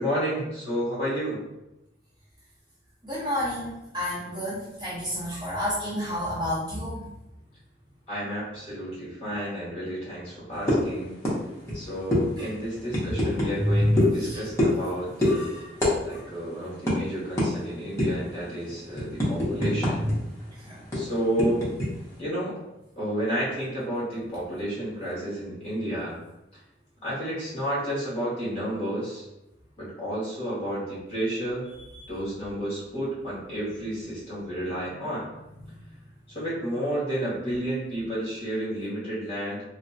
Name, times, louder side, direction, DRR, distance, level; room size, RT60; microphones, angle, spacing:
voice 1, 0.0-1.4 8.1-11.2 11.7-15.5 16.0-20.1 20.9-21.7 22.2-22.6 22.9-26.2 27.0-29.3 29.8-31.7 32.1-35.3 36.3-39.6, right 1 dB, 30° left, -8 dB, 1.3 m, -31 dB
voice 2, 3.0-7.0 12.4-12.5 13.7-13.9 14.2-14.4 15.2-15.7 16.1-16.2 20.7-20.8 35.6-35.7, equal, 25° right, -8 dB, 0.8 m, -29 dB
sound 1, 10.7-10.9 11.2-11.4 11.6-11.8 12.1-12.2 12.9-13.5 14.0-14.2 14.6-14.9 15.2-15.4 15.8-15.9 16.2-16.4 16.9-17.0 17.4-17.5 18.0-18.2 18.7-20.1 20.4-20.5 20.9-21.9, left 1 dB, 15° left, 0.8 m, -23 dB
3.4 x 2.1 x 2.6 m, 0.91 s
head